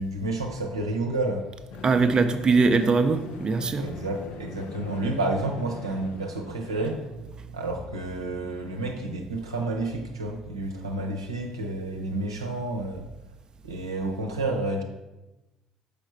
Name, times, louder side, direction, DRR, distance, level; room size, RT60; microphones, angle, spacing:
voice 1, 0.0-1.5 3.8-13.1 13.6-14.8, right 2 dB, 90° right, 0.6 m, -30 dB
sound 1, 1.7-7.2, left 5 dB, 65° left, 0.5 m, -42 dB
voice 2, 1.8-3.9, right 4 dB, 35° right, 0.5 m, -21 dB
6.3 x 5.0 x 4.6 m
figure-of-eight pair, 50°, 2 cm